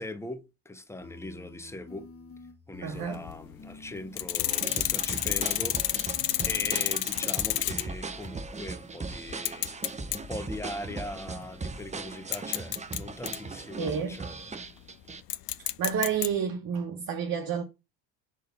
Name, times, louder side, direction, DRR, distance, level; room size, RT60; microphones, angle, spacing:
voice 1, 0.0-2.1 2.7-9.7 10.1-14.3, left 2 dB, 5° left, 1.0 m, -40 dB
sound 1, 1.0-7.9, left 4 dB, 30° left, 1.9 m, -49 dB
voice 2, 2.8-3.2 13.8-14.2 15.6-17.6, right 7 dB, 45° right, 1.1 m, -30 dB
sound 2, 3.0-3.4 4.2-8.0 8.4-8.5 9.3-10.3 10.7-11.0 11.8-11.9 12.3-13.4 15.3-16.3, left 15 dB, 50° left, 0.6 m, -29 dB
sound 3, 4.5-15.2, right 4 dB, 15° right, 0.7 m, -39 dB
5.3 x 3.9 x 5.3 m
hypercardioid pair, 60°, 48 cm